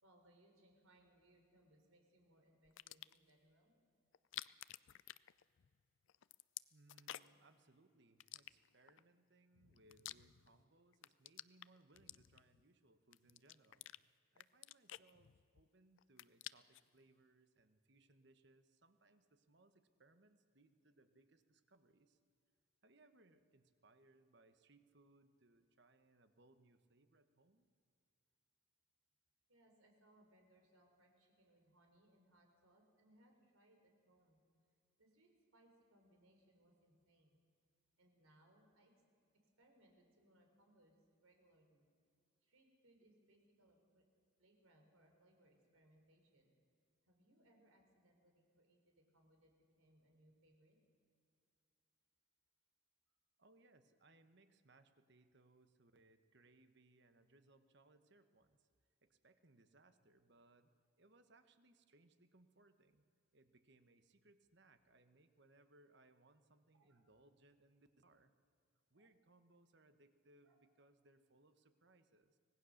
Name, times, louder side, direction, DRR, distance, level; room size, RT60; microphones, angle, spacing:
voice 1, 0.0-3.7 29.5-34.4 35.0-37.4 38.0-39.0 39.3-41.9 42.4-44.0 44.4-46.5 47.0-50.8 66.7-67.0 68.9-69.1 70.4-70.6, right 1 dB, 90° right, 3 dB, 4.0 m, -71 dB
sound 1, 2.6-3.3 4.1-5.8 6.1-7.5 8.2-9.0 9.5-10.6 10.9-12.6 13.1-14.0 14.4-15.7 16.0-16.9, left 14 dB, 65° left, 0.4 m, -52 dB
voice 2, 6.7-13.9 14.3-22.2 22.8-27.7 53.4-58.7 59.0-60.7 61.0-63.0 63.3-68.3 68.9-72.4, right 2 dB, 55° right, 9 dB, 1.2 m, -70 dB
25.0 x 18.5 x 6.5 m, 2.4 s
head